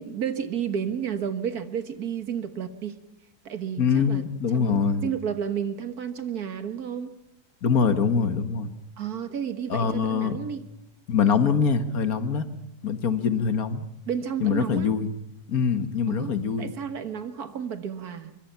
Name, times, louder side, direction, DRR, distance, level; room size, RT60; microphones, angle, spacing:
voice 1, 0.0-2.9 3.5-4.2 4.5-7.2 9.0-10.6 14.1-14.9 16.1-18.4, right 8 dB, 70° right, 10 dB, 1.9 m, -31 dB
voice 2, 3.8-5.0 7.6-8.7 9.7-10.4 11.1-12.4 12.8-13.8 14.4-15.1 15.5-16.7, left 6 dB, 65° left, 10 dB, 1.8 m, -24 dB
24.5 x 23.0 x 5.7 m, 0.85 s
omnidirectional pair, 1.7 m